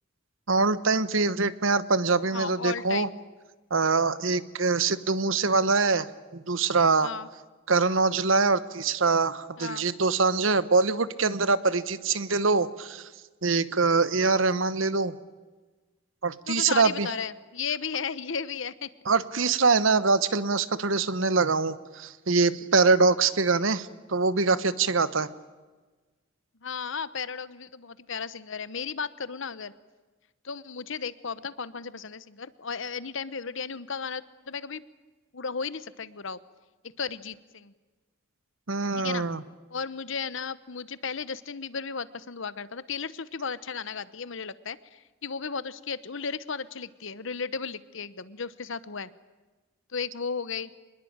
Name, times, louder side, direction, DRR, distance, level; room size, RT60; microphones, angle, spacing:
voice 1, 0.5-3.1 3.7-6.1 6.3-7.1 7.7-13.1 13.4-15.1 16.2-17.1 19.1-25.3 38.7-39.4, right 4 dB, 70° right, 15 dB, 1.1 m, -24 dB
voice 2, 2.3-3.1 7.0-7.3 9.6-9.9 16.5-18.9 26.6-29.7 30.4-34.8 35.3-36.4 37.0-37.7 39.0-39.2 39.7-49.1 49.9-50.7, left 5 dB, 65° left, 16 dB, 1.1 m, -34 dB
25.5 x 21.0 x 8.8 m, 1.3 s
head